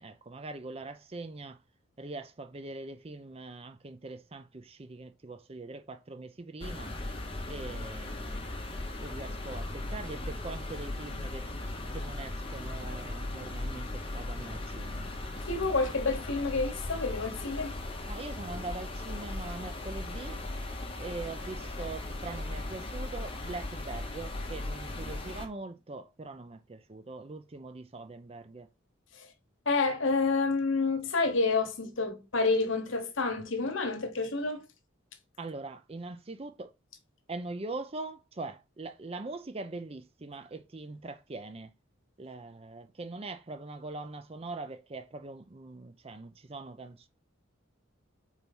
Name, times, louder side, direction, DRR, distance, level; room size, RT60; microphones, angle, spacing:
voice 1, 0.0-1.6 2.0-6.9 7.5-8.6 9.0-11.5 11.9-15.1 18.0-20.4 21.0-28.7 35.4-36.7 37.3-41.7 42.2-47.1, right 3 dB, 30° right, 0.5 m, -42 dB
sound 1, 6.6-25.5, left 2 dB, 25° left, 1.1 m, -38 dB
voice 2, 15.4-17.8 29.1-29.3 29.6-34.6, left 3 dB, 70° left, 1.2 m, -29 dB
4.5 x 4.1 x 5.4 m
head